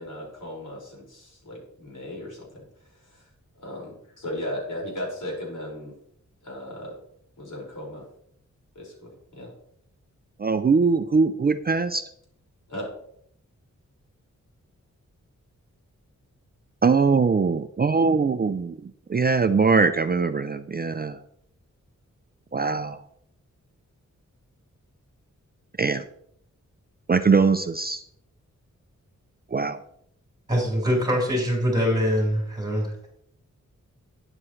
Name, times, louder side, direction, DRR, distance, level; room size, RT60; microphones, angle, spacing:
voice 1, 0.0-2.7 3.0-3.3 3.6-5.9 6.4-7.0 7.4-8.0 8.8-9.1 9.4-9.5 12.7-12.9, left 1 dB, 90° left, -3 dB, 5.4 m, -36 dB
voice 2, 10.4-12.0 16.8-21.2 22.5-23.0 25.8-26.0 27.1-28.0 29.5-29.8, right 4 dB, 30° right, 9 dB, 0.4 m, -22 dB
voice 3, 30.5-33.1, equal, 15° right, -2 dB, 4.8 m, -23 dB
12.5 x 9.9 x 3.2 m, 0.70 s
wide cardioid pair, 130°, 30 cm